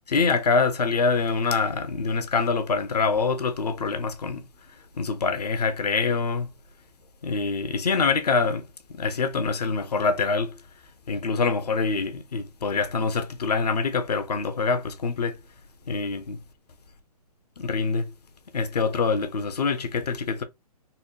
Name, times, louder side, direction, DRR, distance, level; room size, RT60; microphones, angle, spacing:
voice 1, 0.1-4.4 5.0-6.5 7.2-8.6 8.9-10.5 11.1-15.4 15.9-16.4 17.6-18.1 18.5-20.4, left 4 dB, 80° left, 1.0 m, -25 dB
4.2 x 2.3 x 2.9 m
hypercardioid pair, 130°, 20 cm